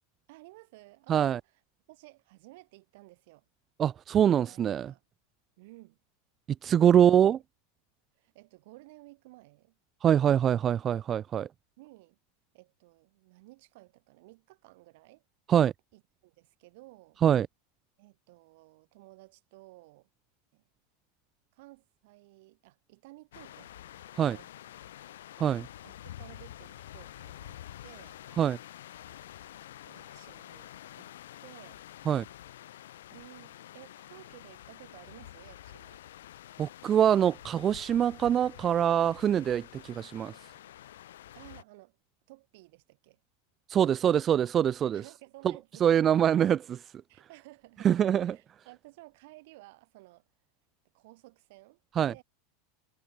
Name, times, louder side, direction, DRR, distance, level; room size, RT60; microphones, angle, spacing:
voice 1, 0.3-1.6 1.9-3.5 4.4-5.0 5.6-6.0 8.2-9.8 11.8-12.2 12.5-15.2 15.9-17.2 18.0-20.1 20.5-20.6 21.5-23.8 24.3-24.5 25.8-28.2 29.3-30.7 31.0-31.1 31.4-31.8 33.1-36.0 41.3-42.0 42.3-43.2 43.8-44.3 44.9-46.1 47.1-47.9 48.2-50.3 50.9-52.2, right 22 dB, 65° right, 7.9 m, -54 dB
voice 2, 1.1-1.4 3.8-4.9 6.6-7.4 10.0-11.5 15.5-15.7 17.2-17.5 24.2-24.4 25.4-25.7 28.4-28.6 32.1-32.2 36.6-40.3 43.7-45.0 45.8-46.9 47.8-48.4 52.0-52.1, right 9 dB, 35° right, 0.5 m, -24 dB
sound 1, 23.3-41.6, left 12 dB, 75° left, 4.0 m, -48 dB
hypercardioid pair, 95°, 0 cm